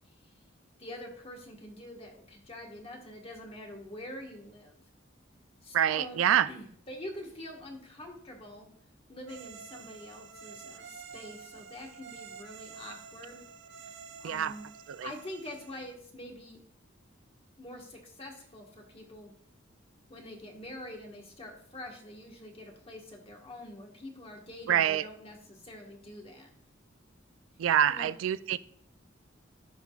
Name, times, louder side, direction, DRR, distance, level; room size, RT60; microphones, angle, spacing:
voice 1, 0.8-4.8 5.6-6.2 6.5-8.7 9.1-13.4 14.2-14.6 15.0-16.6 17.6-19.3 20.1-26.5 27.9-28.1, left 1 dB, 30° left, 1 dB, 1.5 m, -45 dB
voice 2, 5.7-6.5 14.2-14.5 14.9-15.1 24.7-25.1 27.6-28.6, right 10 dB, 80° right, 15 dB, 0.3 m, -26 dB
sound 1, 9.3-15.9, right 6 dB, 65° right, 0.7 m, -49 dB
15.0 x 5.1 x 2.4 m, 0.64 s
head